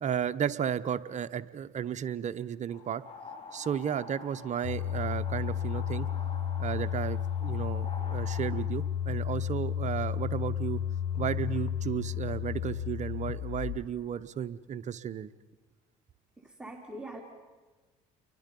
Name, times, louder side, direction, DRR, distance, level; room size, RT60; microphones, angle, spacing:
voice 1, 0.0-3.0 3.5-6.1 6.6-10.8 11.2-15.3, right 8 dB, 45° right, 12 dB, 1.0 m, -33 dB
sound 1, 2.7-8.6, left 4 dB, 35° left, 5.2 m, -47 dB
sound 2, 4.6-13.9, left 9 dB, 60° left, 1.0 m, -32 dB
voice 2, 16.4-17.2, right 1 dB, 5° right, 0 dB, 3.4 m, -42 dB
30.0 x 23.0 x 5.4 m, 1.3 s
supercardioid pair, 80°, 17 cm